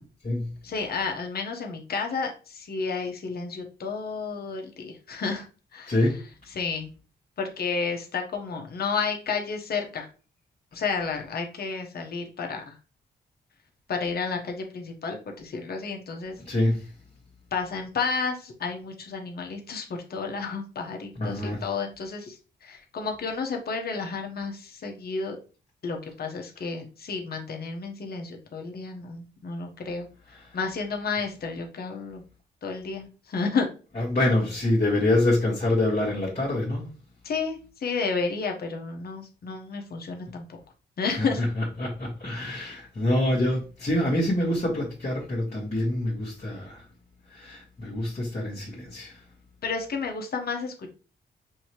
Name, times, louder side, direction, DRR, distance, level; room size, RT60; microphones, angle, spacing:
voice 1, 0.6-5.5 5.7-5.9 6.5-6.9 7.4-10.1 10.7-12.7 13.9-16.4 17.5-25.4 25.8-30.1 30.5-32.2 32.6-33.7 37.2-40.4 41.0-41.4 42.5-42.7 49.6-50.9, left 4 dB, 60° left, 1.1 m, -31 dB
voice 2, 5.9-6.2 16.4-16.9 21.2-21.6 30.3-30.6 34.0-36.9 41.0-46.9 47.3-49.2, left 1 dB, 40° left, 1.7 m, -26 dB
6.2 x 2.8 x 3.0 m
cardioid pair, 75°, 18 cm